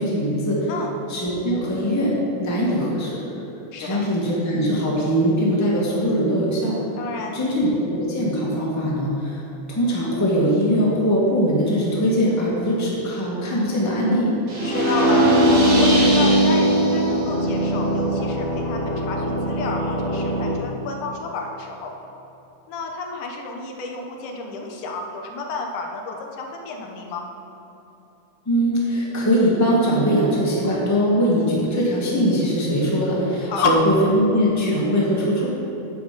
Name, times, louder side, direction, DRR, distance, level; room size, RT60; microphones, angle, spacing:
voice 1, 0.0-0.7 1.1-3.2 3.8-6.8 7.3-9.4 9.7-14.3 28.4-35.5, equal, 10° left, -6 dB, 1.3 m, -21 dB
voice 2, 3.7-4.0 7.0-7.4 14.6-15.3 15.6-21.9 22.7-27.3 33.4-33.8, left 4 dB, 80° left, 1 dB, 2.5 m, -30 dB
sound 1, 14.5-20.5, right 1 dB, 90° right, 4.0 m, -19 dB
9.8 x 8.2 x 5.2 m, 3.0 s
omnidirectional pair, 3.5 m